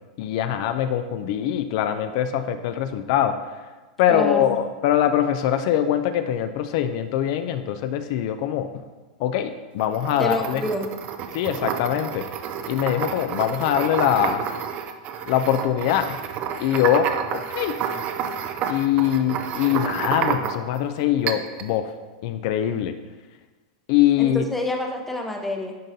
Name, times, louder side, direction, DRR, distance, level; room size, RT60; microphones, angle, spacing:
voice 1, 0.2-3.6 4.0-8.7 9.2-10.6 11.3-12.3 12.7-14.5 15.3-16.2 16.6-17.8 18.7-21.9 22.2-22.9 23.9-24.5, left 10 dB, 55° left, 9 dB, 0.3 m, -23 dB
voice 2, 4.1-4.5 10.2-10.9 24.2-25.7, left 1 dB, 5° left, 2 dB, 0.7 m, -27 dB
sound 1, 9.8-20.8 21.3-21.7, right 7 dB, 35° right, 0.4 m, -30 dB
10.5 x 3.8 x 2.7 m, 1.2 s
supercardioid pair, 150°, 4 cm